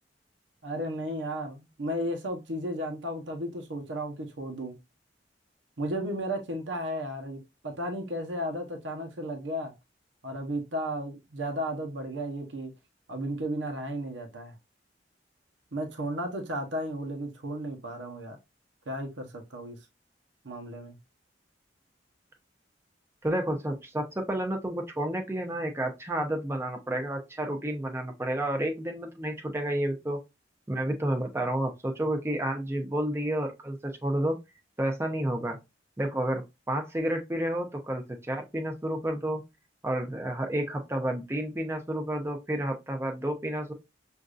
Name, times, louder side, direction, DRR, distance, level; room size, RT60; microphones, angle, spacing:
voice 1, 0.6-4.7 5.8-9.7 10.2-12.7 13.1-14.6 15.7-18.4 18.9-19.8 20.4-21.0, equal, 85° right, 0.9 m, -34 dB
voice 2, 23.2-30.2 30.7-34.4 34.8-35.6 36.0-39.4 39.8-43.7, right 1 dB, 15° right, 0.7 m, -30 dB
6.4 x 2.6 x 2.4 m
head